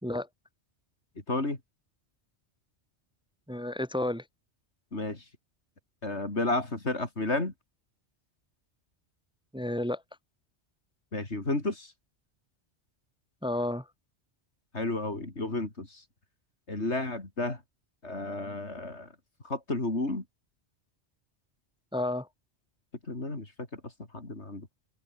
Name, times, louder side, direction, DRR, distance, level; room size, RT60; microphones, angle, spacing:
voice 1, 1.3-1.6 4.9-5.2 6.0-7.5 11.1-11.9 14.7-16.0 16.7-17.6 18.0-19.1 19.4-20.2 23.1-23.5 24.1-24.7, left 2 dB, 80° left, 4.6 m, -31 dB
voice 2, 3.5-4.2 9.5-10.0 13.4-13.9 21.9-22.3, left 1 dB, 5° right, 1.5 m, -31 dB
omnidirectional pair, 1.1 m